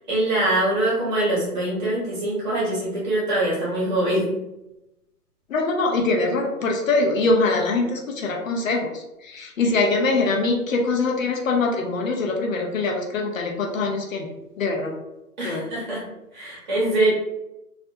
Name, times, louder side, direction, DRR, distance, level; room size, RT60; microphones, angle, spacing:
voice 1, 0.1-4.4 15.4-16.0 16.3-17.1, right 1 dB, 30° right, -6 dB, 0.9 m, -23 dB
voice 2, 5.5-14.3 14.6-14.9 15.4-15.7, left 3 dB, 60° left, 1 dB, 0.6 m, -23 dB
2.4 x 2.1 x 2.6 m, 0.92 s
hypercardioid pair, 155°, 46 cm